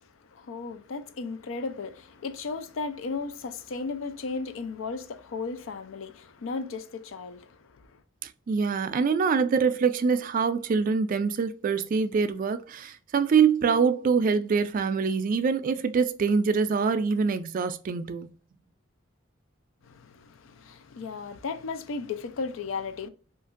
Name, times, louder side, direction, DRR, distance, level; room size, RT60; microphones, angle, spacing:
voice 1, 0.0-8.0 19.8-23.1, left 4 dB, 80° left, 0.4 m, -35 dB
voice 2, 8.5-18.3, right 5 dB, 45° right, 0.3 m, -24 dB
2.8 x 2.5 x 2.4 m
head